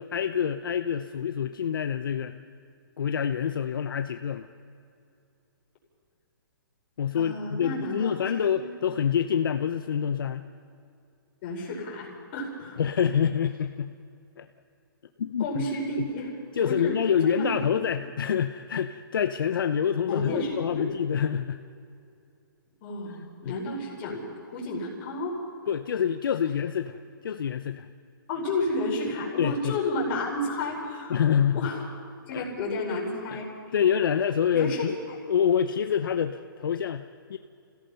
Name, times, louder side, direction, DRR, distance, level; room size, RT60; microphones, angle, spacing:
voice 1, 0.0-2.3 3.0-4.5 7.0-10.4 12.8-13.9 14.4-14.5 15.2-15.7 16.5-21.6 23.4-23.5 25.7-27.9 29.4-29.8 31.1-31.7 32.3-32.5 33.3-33.4 33.7-35.0 35.3-37.4, left 8 dB, 65° left, 8 dB, 0.8 m, -26 dB
voice 2, 7.1-8.1 8.5-9.0 11.4-12.8 15.4-16.3 16.6-17.5 20.1-20.9 22.8-25.4 28.3-31.2 31.5-31.8 32.3-33.5 34.5-34.9, left 2 dB, 30° left, -3 dB, 5.2 m, -31 dB
27.5 x 16.5 x 5.8 m, 2.5 s
hypercardioid pair, 170°, 12 cm